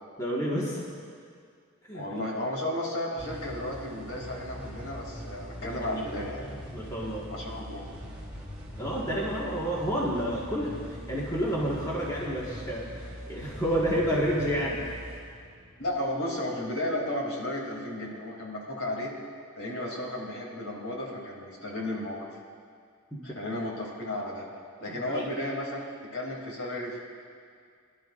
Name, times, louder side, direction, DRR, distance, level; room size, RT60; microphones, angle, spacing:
voice 1, 0.2-0.8 1.9-2.2 5.6-6.0 6.7-7.3 8.8-10.7 11.1-12.9 13.3-14.8 23.1-23.2 24.9-25.2, equal, 15° left, -5 dB, 1.6 m, -29 dB
voice 2, 1.9-6.5 7.3-7.8 15.8-19.1 19.6-22.3 23.2-24.4 24.8-25.8 26.1-27.0, left 1 dB, 70° left, -2 dB, 2.9 m, -33 dB
sound 1, 3.2-16.5, equal, 5° right, 3.6 m, -42 dB
23.5 x 12.0 x 2.5 m, 2.1 s
head